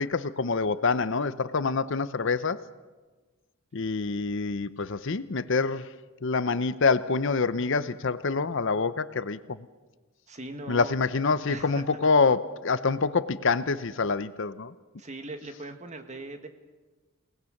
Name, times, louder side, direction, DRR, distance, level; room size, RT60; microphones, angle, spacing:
voice 1, 0.0-2.6 3.7-5.9 6.2-9.6 10.7-14.7, left 4 dB, 60° left, 14 dB, 0.7 m, -26 dB
voice 2, 10.3-10.9 11.5-12.0 15.0-16.5, right 2 dB, 35° right, 7 dB, 1.8 m, -40 dB
29.5 x 19.0 x 6.5 m, 1.3 s
head